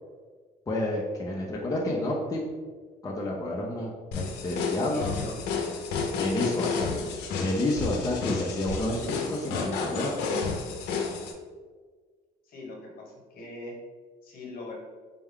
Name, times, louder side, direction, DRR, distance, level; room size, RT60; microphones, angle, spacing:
voice 1, 0.7-2.4 3.0-5.1 6.2-7.1 7.4-10.2, left 1 dB, 20° left, -3 dB, 0.6 m, -30 dB
sound 1, 4.1-11.3, left 4 dB, 85° left, 0.6 m, -31 dB
voice 2, 4.7-5.4 12.4-13.7 14.2-14.7, left 2 dB, 60° left, -1 dB, 1.1 m, -40 dB
4.4 x 2.2 x 3.6 m, 1.5 s
cardioid pair, 110°, 17 cm